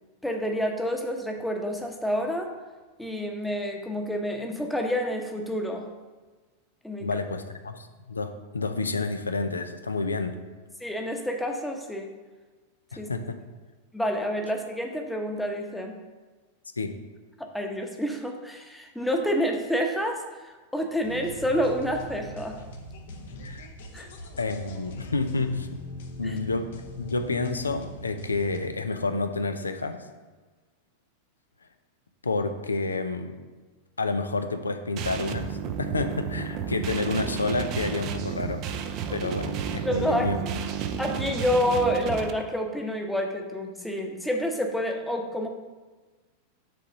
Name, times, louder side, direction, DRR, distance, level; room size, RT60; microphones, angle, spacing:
voice 1, 0.2-2.5 3.0-5.9 6.8-7.1 10.8-12.1 13.0-13.1 13.9-16.0 17.4-22.6 23.9-24.1 26.2-26.4 39.8-40.3 41.0-45.5, equal, 5° left, 3 dB, 0.9 m, -28 dB
voice 2, 7.0-10.3 12.9-13.4 16.8-16.9 23.4-23.7 24.4-25.7 26.2-26.7 27.0-30.1 32.2-33.4 34.0-38.6 39.1-40.4, left 3 dB, 75° left, 8 dB, 0.6 m, -29 dB
sound 1, 21.0-28.7, left 1 dB, 60° left, 0.9 m, -41 dB
sound 2, 35.0-42.3, right 7 dB, 40° right, 0.6 m, -32 dB
6.5 x 4.1 x 6.4 m, 1.3 s
figure-of-eight pair, 90°, 0 cm